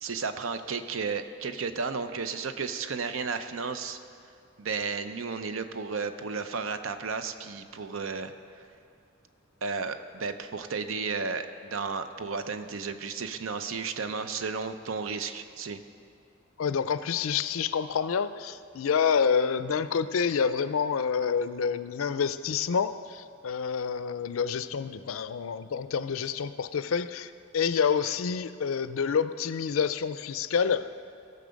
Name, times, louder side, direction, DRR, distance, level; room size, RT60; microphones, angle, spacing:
voice 1, 0.0-4.0 4.6-8.3 9.6-15.8, right 5 dB, 75° right, 9 dB, 0.6 m, -33 dB
voice 2, 16.6-30.8, left 6 dB, 80° left, 13 dB, 0.4 m, -28 dB
17.0 x 6.7 x 5.2 m, 2.4 s
head